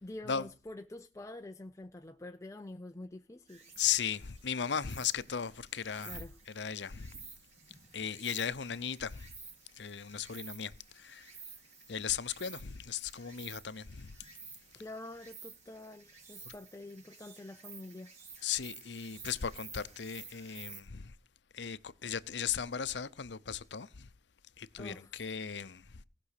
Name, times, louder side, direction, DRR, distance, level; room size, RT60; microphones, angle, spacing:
voice 1, 0.0-3.7 6.0-6.4 14.8-18.1 24.8-25.2, left 2 dB, 15° left, 0.6 m, -47 dB
Insect, 3.5-20.8, right 5 dB, 40° right, 3.9 m, -52 dB
voice 2, 3.8-6.2 6.5-7.2 7.9-9.3 9.8-11.3 11.9-14.1 18.4-21.1 21.5-24.1 24.6-26.0, left 8 dB, 70° left, 0.7 m, -36 dB
18.5 x 6.2 x 6.5 m
head